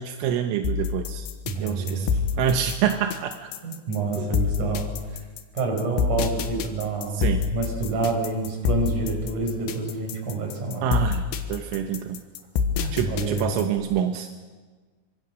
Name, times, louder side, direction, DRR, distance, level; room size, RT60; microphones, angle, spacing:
voice 1, 0.0-1.3 1.6-2.1 2.4-3.5 4.2-4.4 7.1-7.4 10.8-11.2 11.5-12.2 12.9-14.3, right 9 dB, 85° right, 6 dB, 3.5 m, -26 dB
sound 1, 0.6-13.8, left 6 dB, 70° left, 3.3 m, -27 dB
voice 2, 1.4-2.2 3.6-5.0 5.5-10.9 12.8-13.6, right 3 dB, 40° right, 2 dB, 6.4 m, -28 dB
25.5 x 24.5 x 6.4 m, 1.4 s
omnidirectional pair, 5.6 m